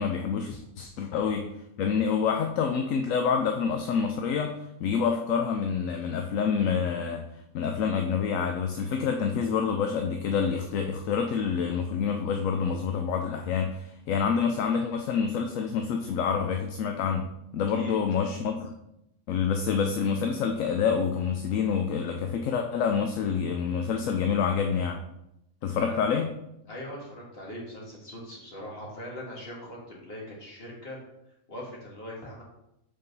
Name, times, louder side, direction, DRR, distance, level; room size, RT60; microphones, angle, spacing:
voice 1, 0.0-1.5 1.8-4.5 4.8-7.3 7.5-17.3 17.5-18.7 19.3-25.0 25.6-26.3, left 6 dB, 75° left, 4 dB, 1.0 m, -27 dB
voice 2, 25.8-26.2 26.7-31.0 31.5-32.4, left 1 dB, 45° left, -3 dB, 2.1 m, -41 dB
5.2 x 4.6 x 5.3 m, 0.83 s
omnidirectional pair, 1.4 m